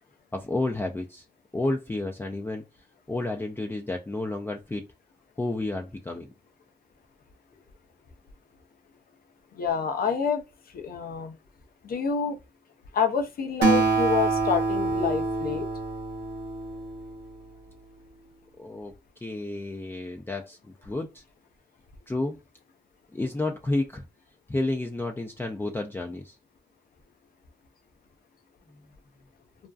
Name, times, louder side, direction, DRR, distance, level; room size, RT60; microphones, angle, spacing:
voice 1, 0.3-1.2 1.5-2.6 3.1-4.8 5.4-6.3 18.6-18.9 19.2-21.2 22.1-22.4 23.1-24.0 24.5-26.3, left 2 dB, 15° left, 0.4 m, -31 dB
voice 2, 9.5-10.4 10.7-11.3 11.8-12.4 12.9-15.6, left 6 dB, 60° left, 0.6 m, -27 dB
Acoustic guitar, 13.6-17.3, right 3 dB, 80° right, 0.8 m, -26 dB
2.5 x 2.2 x 2.3 m
supercardioid pair, 50°, 17 cm